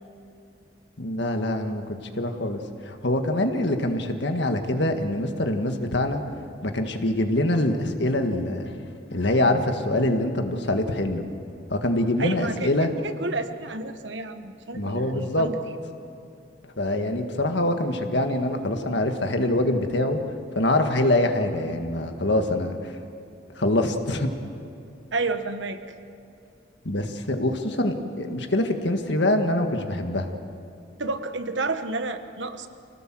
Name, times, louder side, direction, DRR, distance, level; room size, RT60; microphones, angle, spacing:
voice 1, 1.0-6.2 6.6-8.7 9.1-11.3 11.7-12.9 14.7-15.5 16.8-20.2 20.5-22.9 23.6-24.3 26.8-30.3, left 1 dB, 70° left, 6 dB, 1.8 m, -24 dB
voice 2, 12.2-12.7 13.0-15.7 25.1-25.8 27.7-27.8 31.0-32.7, right 3 dB, 75° right, 8 dB, 1.2 m, -30 dB
27.0 x 18.0 x 7.7 m, 2.6 s
head